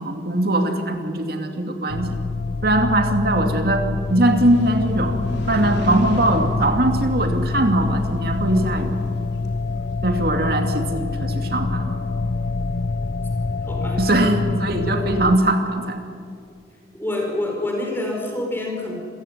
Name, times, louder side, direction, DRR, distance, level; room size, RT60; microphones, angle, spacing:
voice 1, 0.0-2.2 2.6-9.0 10.0-12.1 14.0-16.0, right 1 dB, 60° right, 5 dB, 2.6 m, -21 dB
sound 1, 1.9-15.4, left 3 dB, 60° left, 0.6 m, -26 dB
Motorcycle, 4.0-9.9, equal, 80° left, 3.4 m, -35 dB
voice 2, 13.6-14.0 16.9-18.9, left 1 dB, 15° left, 0 dB, 4.9 m, -27 dB
27.5 x 16.0 x 9.6 m, 2.3 s
head